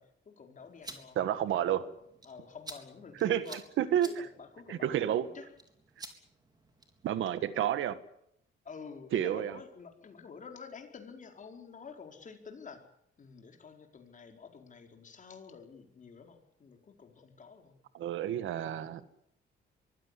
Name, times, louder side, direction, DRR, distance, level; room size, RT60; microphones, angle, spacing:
voice 1, 0.0-1.2 1.4-1.9 2.2-3.6 4.0-5.5 8.6-12.9 13.2-17.7, left 5 dB, 40° left, 4.7 m, -49 dB
sound 1, 0.6-7.1, right 2 dB, 20° right, 4.0 m, -52 dB
voice 2, 1.2-1.8 3.2-4.1 4.7-5.2 7.0-8.0 9.1-9.6 17.9-19.2, right 11 dB, 80° right, 1.6 m, -30 dB
23.5 x 16.0 x 9.9 m
cardioid pair, 110°, 20 cm